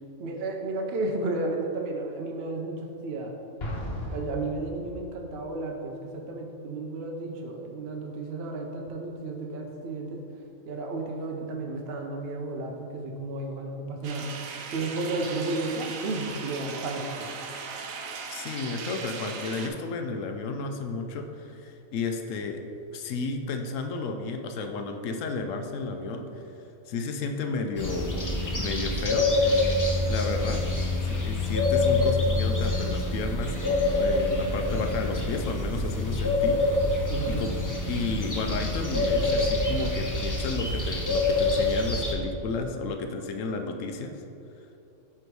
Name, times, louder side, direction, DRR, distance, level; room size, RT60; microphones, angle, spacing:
voice 1, 0.2-3.3 4.1-10.2 10.7-14.3 14.7-17.3 37.1-37.5, right 2 dB, 60° right, 1 dB, 0.8 m, -33 dB
Explosion, 3.6-5.3, equal, 50° left, 1.3 m, -36 dB
sound 1, 14.0-19.7, right 5 dB, 80° right, 1.1 m, -38 dB
voice 2, 18.3-22.6 22.9-26.3 26.9-29.4 29.7-30.6 31.0-37.5 37.9-44.1, left 4 dB, 75° left, 5 dB, 0.9 m, -33 dB
sound 2, 27.8-42.1, left 2 dB, 20° left, 0.5 m, -26 dB
7.8 x 3.5 x 4.6 m, 2.8 s
omnidirectional pair, 1.4 m